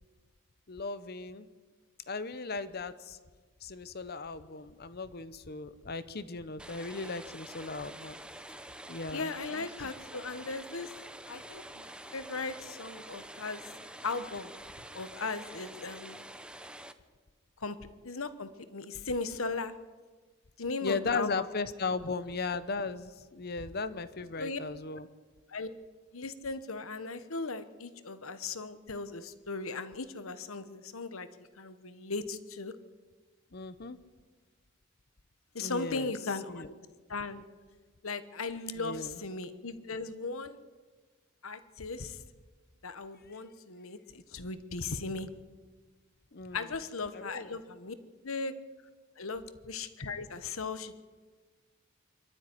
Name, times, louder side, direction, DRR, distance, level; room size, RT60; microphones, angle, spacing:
voice 1, 0.7-1.5 2.1-3.2 3.6-8.2 8.9-9.9 20.8-25.1 33.5-34.0 35.6-36.1 36.5-36.7 38.7-39.2 43.3-43.4 46.3-46.8 47.1-47.6, left 4 dB, 50° left, 13 dB, 0.8 m, -37 dB
sound 1, 6.6-16.9, right 1 dB, 5° right, 0.8 m, -47 dB
voice 2, 9.1-10.9 11.3-13.6 14.0-14.5 14.9-16.2 17.6-17.8 18.0-19.7 20.6-21.5 24.4-24.6 25.5-25.7 26.1-31.3 31.6-32.7 35.5-36.7 37.1-37.4 38.0-40.6 41.4-42.2 42.8-45.3 46.5-47.9 48.2-48.5 49.2-50.9, left 3 dB, 75° left, 12 dB, 1.2 m, -37 dB
24.0 x 12.5 x 9.5 m, 1.4 s
head